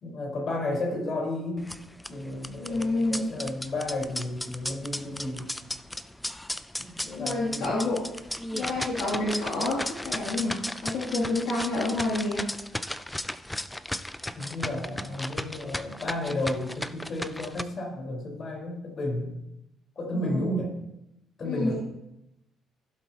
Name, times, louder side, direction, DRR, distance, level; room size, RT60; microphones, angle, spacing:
voice 1, 0.0-1.6 2.1-5.5 6.8-7.7 14.3-19.3 20.0-20.7 21.4-21.7, left 1 dB, 50° left, 0 dB, 4.3 m, -32 dB
sound 1, 1.6-17.6, left 1 dB, 10° left, 0.5 m, -36 dB
voice 2, 2.5-3.3 7.2-8.0 8.5-12.5 20.1-20.6 21.4-21.7, left 2 dB, 75° left, -6 dB, 2.7 m, -29 dB
16.0 x 7.4 x 2.9 m, 0.87 s
supercardioid pair, 70°, 0 cm